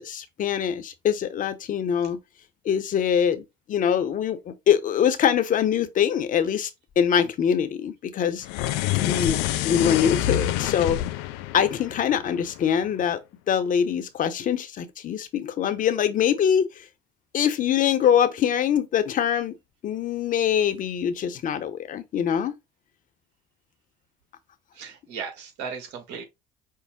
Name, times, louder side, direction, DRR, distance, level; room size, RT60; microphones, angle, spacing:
voice 1, 0.0-2.2 2.6-6.7 7.0-8.5 8.9-9.4 9.6-11.0 11.5-13.2 13.5-16.7 17.3-19.5 19.8-22.5, left 8 dB, 50° left, 0.9 m, -23 dB
sound 1, 8.4-12.8, left 13 dB, 80° left, 0.5 m, -27 dB
voice 2, 24.8-26.2, right 6 dB, 80° right, 1.7 m, -36 dB
5.5 x 2.1 x 3.6 m
supercardioid pair, 75°, 17 cm